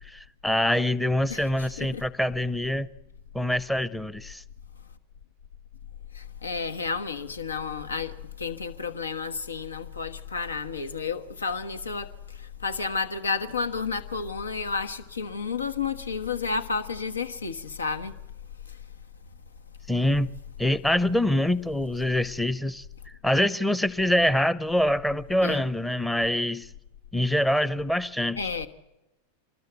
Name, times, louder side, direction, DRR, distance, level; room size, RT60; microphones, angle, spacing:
voice 1, 0.1-2.9 3.3-4.4 19.9-20.3 20.6-22.8 23.2-26.7 27.1-28.5, left 1 dB, 5° left, 0.8 m, -25 dB
voice 2, 6.1-12.1 12.4-18.1 25.4-25.6 28.4-28.7, left 5 dB, 75° left, 1.3 m, -31 dB
26.0 x 20.5 x 8.0 m
figure-of-eight pair, 90°, 0 cm